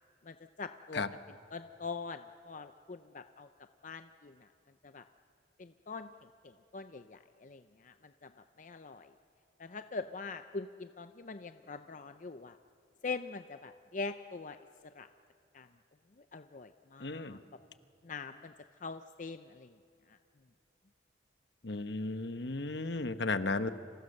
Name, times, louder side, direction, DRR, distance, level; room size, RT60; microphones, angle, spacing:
voice 1, 0.2-1.0 1.5-3.5 3.8-4.5 4.8-5.0 5.6-8.3 8.6-9.1 9.6-12.6 13.0-14.6 14.9-15.1 15.5-15.7 16.2-17.4 18.0-18.5 18.8-19.7 20.1-20.2, left 4 dB, 45° left, 9 dB, 0.6 m, -43 dB
voice 2, 17.0-17.4 21.6-23.7, left 3 dB, 70° left, 10 dB, 1.1 m, -34 dB
29.5 x 26.5 x 6.6 m, 2.5 s
head